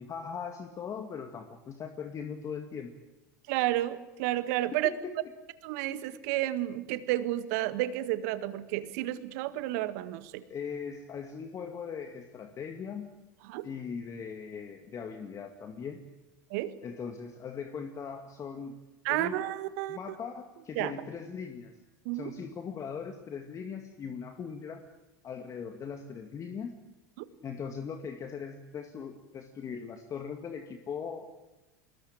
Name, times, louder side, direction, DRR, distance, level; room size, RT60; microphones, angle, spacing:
voice 1, 0.0-2.9 4.8-5.1 10.5-13.1 13.6-16.1 16.8-18.8 19.1-19.4 19.9-21.8 22.1-24.8 25.2-26.7 27.4-31.3, left 6 dB, 35° left, 6 dB, 2.0 m, -40 dB
voice 2, 3.5-4.9 5.6-10.4 13.5-13.7 16.5-16.7 19.1-20.0 20.8-20.9 22.1-22.3 27.2-27.3, right 15 dB, 65° right, 13 dB, 1.7 m, -31 dB
23.0 x 20.5 x 8.8 m, 1.1 s
hypercardioid pair, 90°, 9 cm